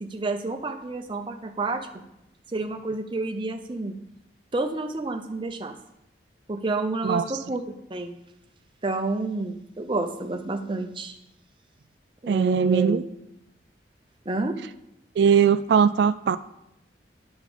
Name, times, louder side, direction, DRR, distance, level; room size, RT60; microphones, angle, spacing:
voice 1, 0.0-2.0 2.5-4.0 4.5-5.8 6.5-8.2 8.8-11.2 12.2-13.1 14.3-14.6, right 2 dB, 25° right, 6 dB, 0.7 m, -29 dB
voice 2, 12.3-13.0 15.2-16.4, right 7 dB, 65° right, 12 dB, 0.3 m, -20 dB
9.1 x 6.3 x 5.0 m, 0.84 s
head